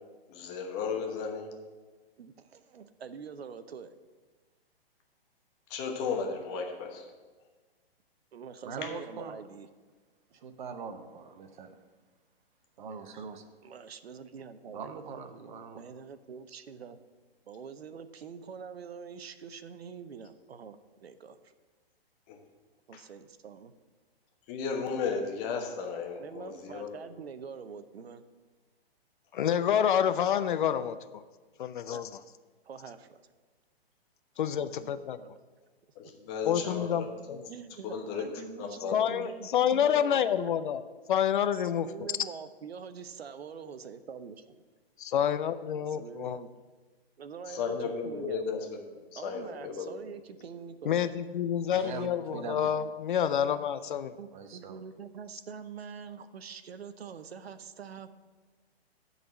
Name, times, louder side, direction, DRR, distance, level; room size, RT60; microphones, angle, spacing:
voice 1, 0.3-1.5 5.7-7.1 8.8-8.9 22.3-22.4 22.9-23.0 24.5-26.9 35.9-37.4 37.8-38.3 38.6-39.2 47.5-50.0, left 5 dB, 30° left, 2 dB, 1.2 m, -35 dB
voice 2, 2.2-3.9 8.3-9.7 13.6-14.9 15.7-17.0 17.5-21.4 22.9-23.7 26.2-28.2 31.9-32.1 32.7-33.2 34.6-35.4 37.5-40.5 41.5-44.4 45.8-46.5 47.2-48.4 49.2-51.1 54.2-58.1, right 6 dB, 75° right, 12 dB, 0.7 m, -45 dB
voice 3, 8.6-9.3 10.3-11.8 12.8-13.5 14.7-15.8 51.7-52.8 54.3-54.8, right 5 dB, 50° right, 8 dB, 0.9 m, -41 dB
voice 4, 29.3-31.0 31.6-32.1 34.4-35.2 36.5-37.4 38.9-40.8 41.1-41.9 45.0-46.4 50.8-54.1, left 9 dB, 55° left, 12 dB, 0.5 m, -28 dB
10.5 x 4.1 x 7.0 m, 1.3 s
hypercardioid pair, 130°, 31 cm